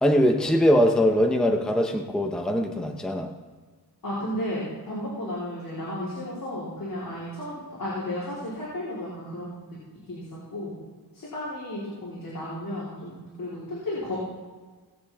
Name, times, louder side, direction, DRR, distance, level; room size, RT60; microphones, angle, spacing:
voice 1, 0.0-3.3, equal, ahead, 3 dB, 0.8 m, -22 dB
voice 2, 4.0-9.6 10.1-10.7 11.1-14.2, left 1 dB, 60° left, -9 dB, 3.9 m, -33 dB
19.0 x 8.1 x 3.6 m, 1.4 s
wide cardioid pair, 165°, 39 cm